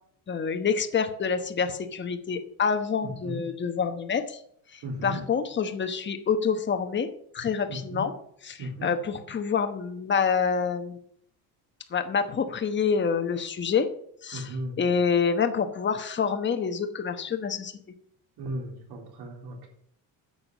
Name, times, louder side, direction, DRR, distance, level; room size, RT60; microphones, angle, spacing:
voice 1, 0.3-4.4 4.7-7.1 7.3-8.1 8.5-11.0 11.9-13.9 14.2-17.7, left 6 dB, 30° left, 7 dB, 1.1 m, -27 dB
voice 2, 3.0-3.4 4.8-5.2 7.7-8.1 8.6-8.9 14.3-14.9 18.4-19.7, right 1 dB, 75° right, 1 dB, 3.7 m, -36 dB
9.7 x 6.7 x 7.4 m, 0.66 s
cardioid pair, 140°, 39 cm